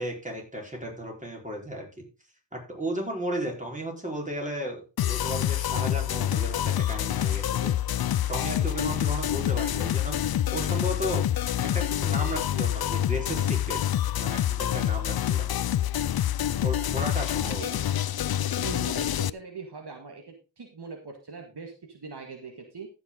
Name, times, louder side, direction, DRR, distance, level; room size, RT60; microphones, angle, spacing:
voice 1, 0.0-2.0 2.5-4.8 5.1-7.7 8.3-11.2 11.6-13.8 14.2-15.5 16.6-17.6, equal, 15° right, 0 dB, 4.4 m, -34 dB
sound 1, 5.0-19.3, left 11 dB, 55° left, 0.5 m, -27 dB
voice 2, 17.3-17.7 18.6-22.9, right 4 dB, 60° right, 2 dB, 1.9 m, -41 dB
15.0 x 6.1 x 3.8 m, 0.30 s
cardioid pair, 60°, 44 cm